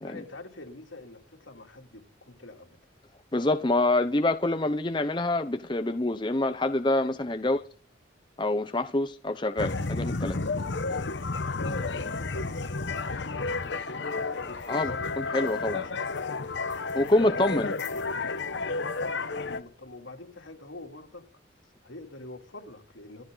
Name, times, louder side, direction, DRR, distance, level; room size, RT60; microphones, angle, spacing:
voice 1, 0.0-2.8 7.4-7.5 11.6-16.5 17.2-21.2 21.8-23.2, left 2 dB, 90° left, 3.1 m, -45 dB
voice 2, 3.3-7.6 8.4-10.4 14.7-15.8 17.0-17.7, left 2 dB, 25° left, 0.8 m, -26 dB
sound 1, 9.6-19.6, left 3 dB, 70° left, 1.0 m, -31 dB
27.0 x 11.5 x 4.0 m
head